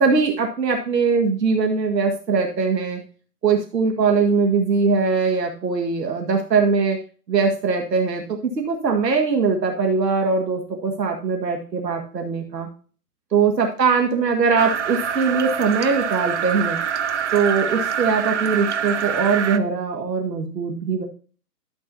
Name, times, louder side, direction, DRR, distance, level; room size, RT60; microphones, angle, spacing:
voice 1, 0.0-3.0 3.4-7.0 7.3-12.7 13.3-16.8 17.3-21.0, right 5 dB, 80° right, 2 dB, 2.0 m, -21 dB
sound 1, 14.6-19.6, right 8 dB, 45° right, 0.7 m, -25 dB
12.5 x 7.6 x 2.8 m, 0.38 s
hypercardioid pair, 160°, 49 cm